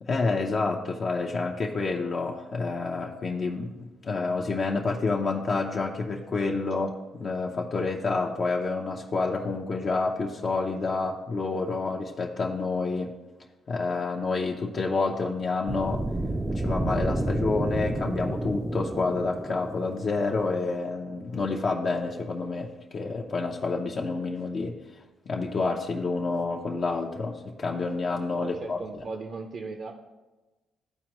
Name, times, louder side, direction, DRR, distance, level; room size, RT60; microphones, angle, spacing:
voice 1, 0.0-13.1 13.7-16.0 16.5-24.8 25.3-28.8, left 3 dB, 45° left, 0 dB, 0.7 m, -28 dB
sound 1, 15.7-20.6, right 1 dB, 15° right, 0.5 m, -30 dB
voice 2, 28.3-29.9, right 4 dB, 55° right, 4 dB, 0.7 m, -37 dB
13.0 x 4.4 x 3.0 m, 1.2 s
cardioid pair, 90°, 0 cm